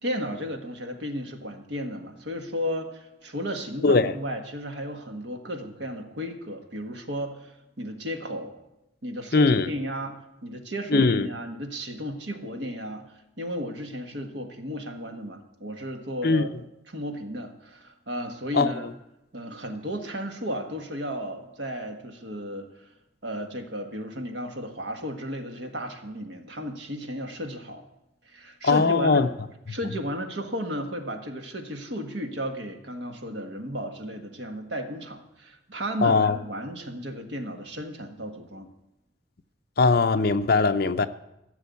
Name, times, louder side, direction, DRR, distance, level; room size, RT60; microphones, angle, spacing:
voice 1, 0.0-8.5 9.0-16.5 16.9-18.9 19.3-22.9 23.2-27.8 28.3-29.2 29.7-38.7, equal, 70° right, 1.6 m, -34 dB
voice 2, 9.3-9.7 10.9-11.3 16.2-16.4 18.5-18.7 28.6-29.3 36.0-36.4 39.8-41.1, left 4 dB, 55° left, 0.6 m, -20 dB
14.5 x 7.1 x 8.3 m
head